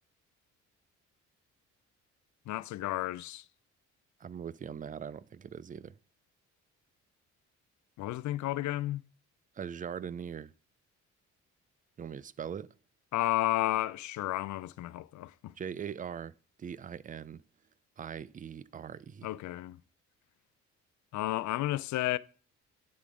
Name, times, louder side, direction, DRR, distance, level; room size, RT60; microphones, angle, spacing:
voice 1, 2.5-3.4 8.0-9.0 13.1-15.5 19.2-19.8 21.1-22.2, left 15 dB, 70° left, 0.5 m, -32 dB
voice 2, 4.2-6.0 9.6-10.5 12.0-12.7 15.6-16.3 16.6-17.4 18.0-19.3, right 8 dB, 30° right, 0.4 m, -41 dB
10.5 x 3.8 x 4.8 m
cardioid pair, 90°, 30 cm